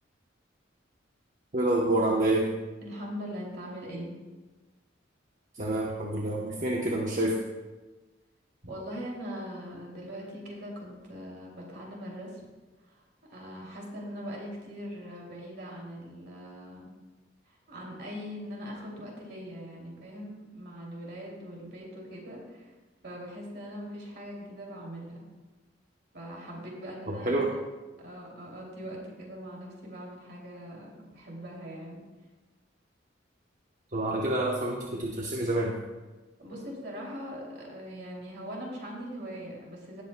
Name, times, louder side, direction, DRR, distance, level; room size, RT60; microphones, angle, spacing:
voice 1, 1.5-2.5 5.6-7.4 27.1-27.5 33.9-35.8, right 1 dB, 45° right, -1 dB, 0.9 m, -27 dB
voice 2, 2.8-4.1 8.6-12.4 12.9-13.0 13.3-16.9 17.5-22.7 23.0-25.3 26.1-27.5 28.0-32.0 36.4-40.0, equal, 60° right, -2 dB, 2.7 m, -41 dB
17.5 x 8.2 x 2.2 m, 1.2 s
head